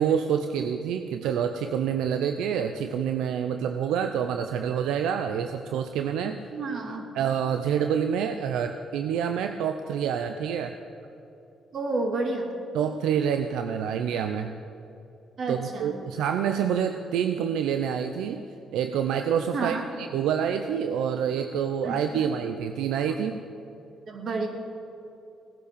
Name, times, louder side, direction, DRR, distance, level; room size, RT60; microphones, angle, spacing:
voice 1, 0.0-6.4 7.1-10.8 12.7-14.6 15.5-18.4 18.7-23.4, right 8 dB, 90° right, 7 dB, 0.6 m, -27 dB
voice 2, 6.5-7.1 11.7-12.5 15.4-15.9 19.5-19.9 21.8-22.3 24.1-24.5, right 3 dB, 55° right, 2 dB, 2.6 m, -30 dB
18.0 x 10.0 x 6.8 m, 2.9 s
cardioid pair, 90°, 0 cm